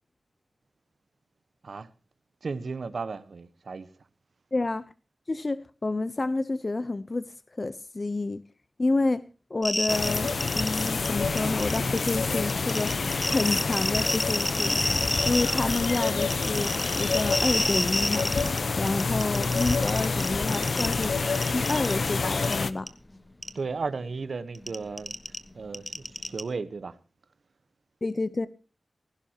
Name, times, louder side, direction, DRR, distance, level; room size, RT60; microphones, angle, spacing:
voice 1, 2.4-3.9 23.5-25.2 25.5-25.9 26.2-27.0, right 4 dB, 75° right, 1.1 m, -34 dB
voice 2, 4.5-4.9 5.3-7.3 7.6-8.4 8.8-9.2 9.5-13.0 13.3-14.8 15.3-18.3 18.8-21.1 21.5-22.9 28.0-28.5, left 2 dB, 35° left, 0.8 m, -29 dB
Geiger Tick Erratic, 9.6-11.1 11.4-12.1 12.5-18.6 18.9-21.0 21.4-21.9 22.4-22.5 22.9-23.0 23.4-23.5 24.5-26.4, left 1 dB, 15° left, 1.3 m, -29 dB
sound 1, 9.9-22.7, left 4 dB, 65° left, 0.9 m, -28 dB
17.0 x 16.0 x 3.0 m
wide cardioid pair, 110°, 0 cm